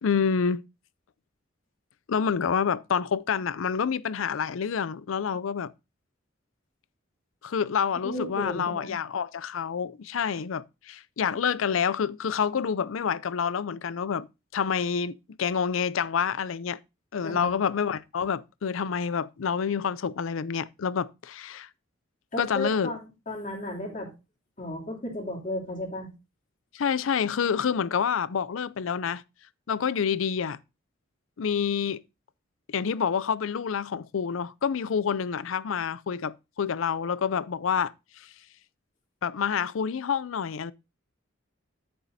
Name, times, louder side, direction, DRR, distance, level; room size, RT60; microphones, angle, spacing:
voice 1, 0.0-0.6 2.1-5.7 7.4-14.3 14.5-16.8 17.1-21.7 22.4-22.9 26.7-29.2 29.7-30.6 31.4-32.0 32.7-38.3 39.2-40.7, left 6 dB, 80° left, 0.5 m, -28 dB
voice 2, 8.0-8.9 17.2-17.5 22.3-24.1 24.6-26.1, left 1 dB, 40° left, 3.0 m, -34 dB
10.0 x 8.9 x 2.7 m
head